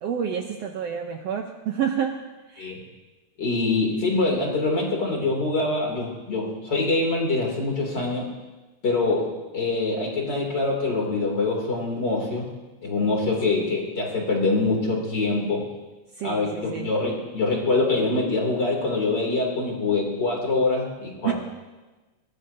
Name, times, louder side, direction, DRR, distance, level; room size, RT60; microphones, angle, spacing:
voice 1, 0.0-2.2 2.5-2.7 8.0-8.1 13.4-13.6 16.2-16.9 21.2-21.3, right 8 dB, 90° right, 3 dB, 1.4 m, -29 dB
voice 2, 3.4-8.2 8.8-12.5 12.8-15.6 16.2-21.3, left 3 dB, 30° left, -1 dB, 3.3 m, -24 dB
23.5 x 19.5 x 2.8 m, 1.2 s
omnidirectional pair, 4.1 m